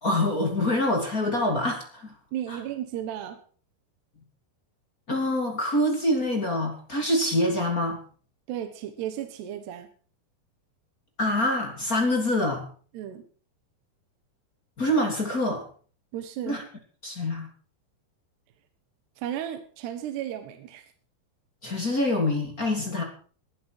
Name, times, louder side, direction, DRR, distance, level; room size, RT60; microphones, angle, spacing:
voice 1, 0.0-2.1 2.5-2.6 5.1-8.0 11.2-12.6 14.8-15.6 16.5-16.6 17.0-17.5 21.6-23.0, left 1 dB, 25° left, 2 dB, 2.5 m, -25 dB
voice 2, 2.3-3.4 8.5-9.9 12.9-13.2 16.1-16.6 19.2-20.9, right 11 dB, 70° right, 8 dB, 3.3 m, -34 dB
20.0 x 12.0 x 4.9 m, 0.44 s
omnidirectional pair, 5.1 m